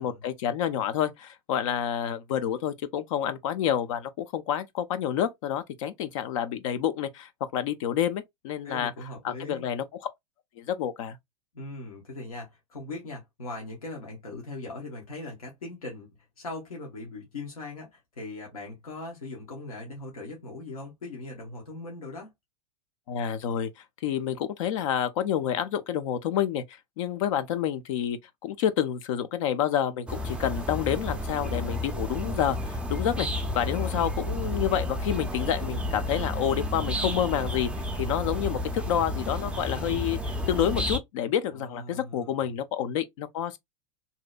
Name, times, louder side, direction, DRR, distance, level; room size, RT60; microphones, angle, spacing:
voice 1, 0.0-9.8 10.6-11.2 23.1-33.3 33.5-37.7 38.0-43.6, left 9 dB, 65° left, 0.5 m, -29 dB
voice 2, 8.6-9.6 11.5-16.1 16.4-22.3 41.5-42.6, left 2 dB, 85° left, 0.9 m, -40 dB
sound 1, 30.1-41.0, left 1 dB, 5° right, 0.4 m, -31 dB
2.7 x 2.0 x 2.3 m
hypercardioid pair, 100°, 18 cm